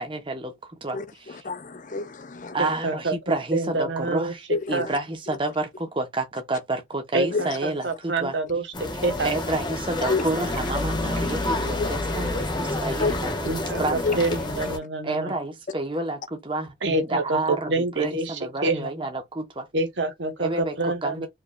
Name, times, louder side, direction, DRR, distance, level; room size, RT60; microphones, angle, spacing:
voice 1, 0.0-1.4 2.5-8.3 9.2-14.0 15.0-16.8 17.1-19.7 20.4-21.3, right 2 dB, 25° right, 0.9 m, -30 dB
voice 2, 0.9-2.6 4.5-5.0 7.3-7.4 10.1-10.2 11.8-12.3 13.0-13.1 13.9-14.2, left 4 dB, 45° left, 0.6 m, -29 dB
voice 3, 2.6-3.1 3.5-4.3 4.7-4.9 7.1-9.3 13.5-15.3 16.8-17.4 17.7-18.9 19.7-21.3, right 2 dB, 75° right, 1.2 m, -27 dB
sound 1, 8.7-14.8, left 1 dB, 25° left, 1.1 m, -28 dB
4.7 x 3.2 x 2.3 m
head